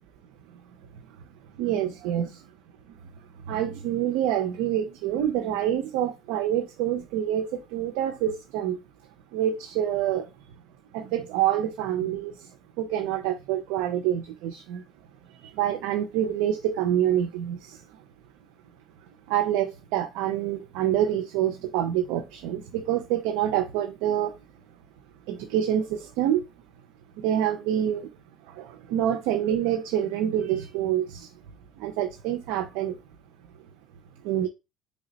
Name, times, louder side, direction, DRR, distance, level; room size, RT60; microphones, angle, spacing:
voice 1, 1.6-2.4 3.5-8.8 9.3-10.3 10.9-12.3 12.8-14.8 15.4-17.8 19.3-24.3 25.3-26.4 27.2-28.1 28.6-31.3 31.8-33.0 34.2-34.5, right 11 dB, 80° right, 0.4 m, -26 dB
3.2 x 2.0 x 3.9 m
supercardioid pair, 100°, 0 cm